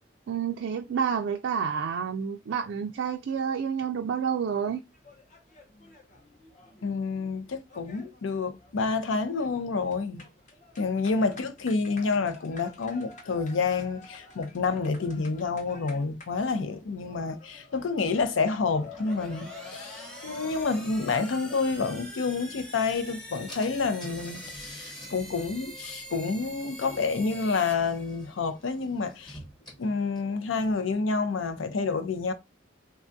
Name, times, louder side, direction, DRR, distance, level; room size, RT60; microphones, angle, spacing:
voice 1, 0.3-4.8, right 7 dB, 70° right, 0.3 m, -29 dB
sound 1, 4.9-24.5, left 3 dB, 40° left, 0.6 m, -51 dB
voice 2, 6.8-10.2 10.8-29.4 29.8-32.3, left 4 dB, 85° left, 0.5 m, -29 dB
sound 2, 18.8-28.5, equal, 5° left, 0.8 m, -45 dB
Car / Engine, 23.0-23.1 23.5-30.9, equal, 25° left, 1.0 m, -49 dB
3.5 x 2.3 x 2.5 m
head